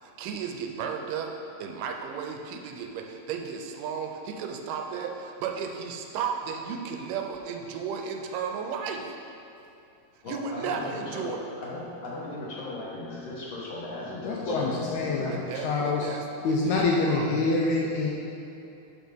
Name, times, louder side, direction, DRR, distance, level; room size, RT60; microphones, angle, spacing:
voice 1, 0.0-1.3 1.6-9.1 10.3-11.4 15.3-16.8 17.1-17.3, right 6 dB, 80° right, 3 dB, 2.2 m, -34 dB
voice 2, 10.2-15.3, left 2 dB, 55° left, -7 dB, 2.3 m, -37 dB
voice 3, 14.2-16.1 16.4-18.1, left 3 dB, 80° left, -2 dB, 1.8 m, -26 dB
11.5 x 4.7 x 3.5 m, 2.8 s
omnidirectional pair, 3.8 m